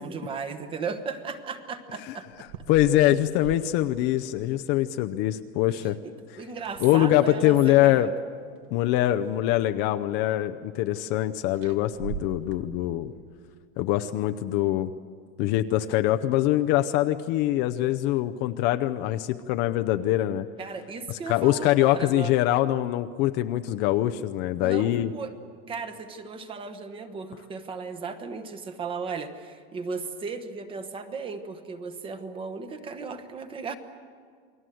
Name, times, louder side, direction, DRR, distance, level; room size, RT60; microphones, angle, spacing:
voice 1, 0.0-2.5 6.0-8.1 20.6-22.3 24.6-25.3 25.7-33.7, right 5 dB, 15° right, 9 dB, 1.1 m, -36 dB
sound 1, 2.3-4.8 6.5-7.4 8.5-8.6 9.1-10.0 11.5-13.2, right 7 dB, 65° right, 1.4 m, -42 dB
voice 2, 2.7-6.0 6.8-8.1 8.7-13.1 13.8-14.9 15.4-20.5 21.1-25.1, left 14 dB, 35° left, 8 dB, 0.6 m, -23 dB
29.0 x 21.0 x 7.7 m, 2.1 s
supercardioid pair, 175°, 30 cm